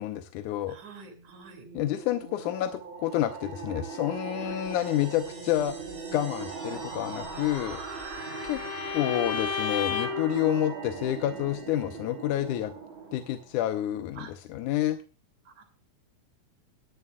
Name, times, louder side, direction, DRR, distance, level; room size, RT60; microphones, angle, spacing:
voice 1, 0.0-0.8 1.7-7.8 8.4-8.6 8.9-12.7 13.1-15.0, left 12 dB, 85° left, 8 dB, 2.2 m, -29 dB
voice 2, 0.7-1.7 4.4-4.6 6.5-6.8 8.5-8.6 14.1-14.3 15.5-15.6, right 5 dB, 70° right, 6 dB, 3.8 m, -48 dB
sound 1, 1.1-13.7, right 5 dB, 45° right, 2.5 m, -40 dB
sound 2, 3.1-12.4, right 3 dB, 25° right, 2.6 m, -48 dB
Bowed string instrument, 7.3-10.4, left 7 dB, 55° left, 1.3 m, -33 dB
19.5 x 11.0 x 2.3 m, 0.33 s
omnidirectional pair, 3.6 m